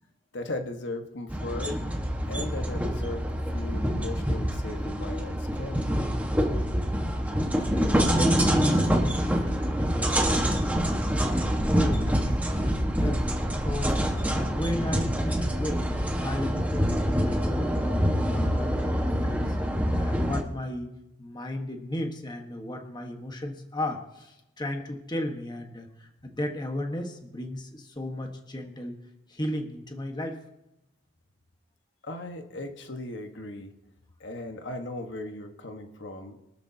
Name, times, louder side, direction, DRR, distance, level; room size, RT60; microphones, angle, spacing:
voice 1, 0.3-1.8 2.3-5.8 32.0-33.7 34.2-36.4, left 2 dB, 65° left, 5 dB, 1.4 m, -37 dB
sound 1, 1.3-20.4, equal, 10° right, 1.4 m, -26 dB
voice 2, 7.6-10.8 11.3-13.9 14.3-15.9 16.2-19.6 20.0-20.9 21.2-29.0 29.3-30.4, left 1 dB, 25° left, 3 dB, 1.4 m, -35 dB
24.5 x 13.0 x 2.9 m, 0.91 s
head